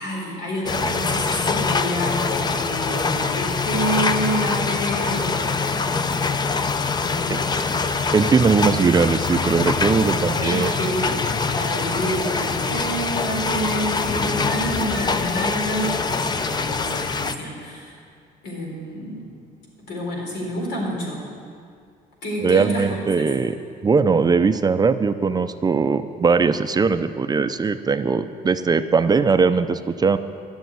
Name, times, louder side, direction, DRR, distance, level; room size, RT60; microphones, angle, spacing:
voice 1, 0.0-5.9 7.0-8.0 10.4-18.0 18.4-19.3 19.9-21.3 22.2-23.2, equal, 85° left, -2 dB, 4.2 m, -28 dB
sound 1, 0.7-17.4, left 4 dB, 25° left, 0.5 m, -24 dB
voice 2, 8.1-10.7 22.4-23.6 23.8-30.2, right 5 dB, 25° right, 10 dB, 0.5 m, -20 dB
12.5 x 7.1 x 9.3 m, 2.2 s
cardioid pair, 110°, 17 cm